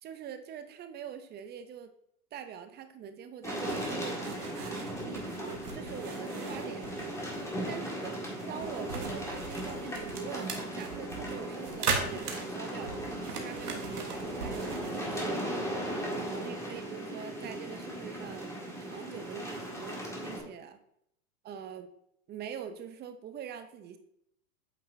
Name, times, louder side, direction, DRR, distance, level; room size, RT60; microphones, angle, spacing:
voice 1, 0.0-1.9 2.3-7.2 7.7-8.1 8.5-15.4 16.1-20.8 21.4-21.9 22.3-24.0, right 8 dB, 20° right, 9 dB, 0.6 m, -44 dB
sound 1, 3.4-20.4, right 1 dB, 5° left, 1.8 m, -37 dB
sound 2, 3.6-15.2, right 5 dB, 90° right, 1.5 m, -39 dB
8.5 x 5.6 x 2.7 m, 0.75 s
hypercardioid pair, 110°, 46 cm